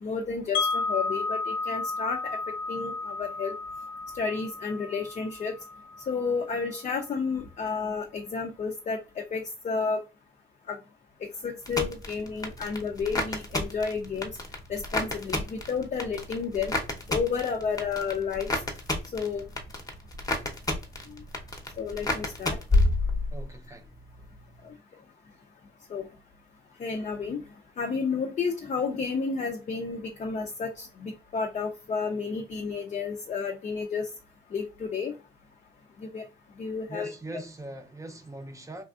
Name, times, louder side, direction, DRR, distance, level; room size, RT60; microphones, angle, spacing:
voice 1, 0.0-2.4 2.7-3.5 4.1-5.5 6.1-10.0 10.7-10.8 11.2-14.3 14.7-16.7 17.1-18.5 19.1-19.4 21.8-22.6 24.6-24.7 25.9-26.1 26.8-27.4 27.8-34.1 34.5-35.1 36.0-36.3 36.6-37.1, left 5 dB, 35° left, 0.5 m, -31 dB
Wind chime, 0.5-6.5, left 3 dB, 80° left, 0.7 m, -33 dB
sound 1, 11.7-23.6 23.9-24.4, left 2 dB, 20° left, 0.8 m, -30 dB
voice 2, 23.3-23.9 36.9-38.8, right 2 dB, 15° right, 0.6 m, -41 dB
3.2 x 2.4 x 2.4 m
cardioid pair, 90°, 20 cm